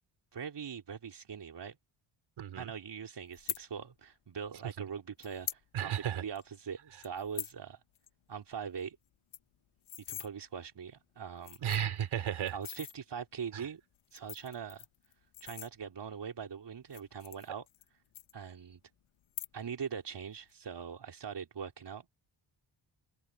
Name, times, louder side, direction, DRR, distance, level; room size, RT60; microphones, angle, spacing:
voice 1, 0.3-1.8 2.5-7.8 8.3-9.0 10.1-11.7 12.5-13.8 14.1-14.8 15.4-17.7 18.3-18.8 19.5-22.1, right 7 dB, 60° right, 3.9 m, -42 dB
voice 2, 2.4-2.7 5.7-6.2 11.6-12.6, right 9 dB, 85° right, 3.9 m, -33 dB
sound 1, 3.3-3.6 4.6-4.7 5.2-5.6 6.0-6.1 6.3-6.6 7.0-7.6 7.9-8.1 8.4-8.5 8.8-8.9 9.1-10.3 11.0-11.1 11.4-12.0 12.5-13.0 13.9-16.1 16.8-17.9 18.1-18.8 19.2-19.8 20.1-20.5, left 12 dB, 90° left, 1.7 m, -43 dB
cardioid pair, 55°, 47 cm